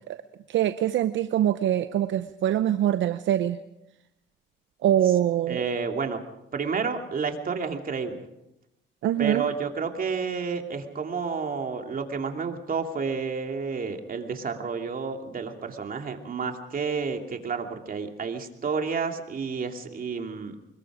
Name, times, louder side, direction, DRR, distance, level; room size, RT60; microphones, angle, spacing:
voice 1, 0.5-3.6 4.8-5.6 9.0-9.5, right 11 dB, 70° right, 11 dB, 0.7 m, -24 dB
voice 2, 5.5-6.2 6.5-8.2 9.2-20.6, right 5 dB, 45° right, 4 dB, 2.8 m, -30 dB
25.5 x 21.5 x 5.0 m, 0.87 s
cardioid pair, 90°, 20 cm